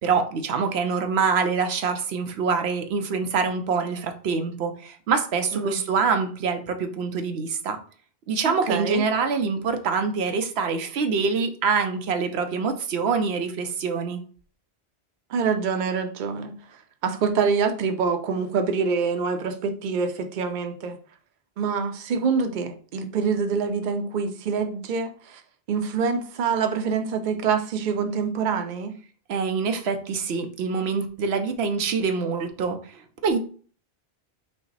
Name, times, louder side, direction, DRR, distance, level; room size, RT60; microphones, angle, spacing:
voice 1, 0.0-7.8 8.3-14.2 29.3-33.4, right 5 dB, 90° right, 7 dB, 0.9 m, -25 dB
voice 2, 8.5-9.0 15.3-16.5 17.0-21.0 21.6-25.4 25.7-29.0, right 5 dB, 55° right, 7 dB, 0.7 m, -25 dB
5.6 x 2.1 x 3.9 m, 0.43 s
omnidirectional pair, 1.0 m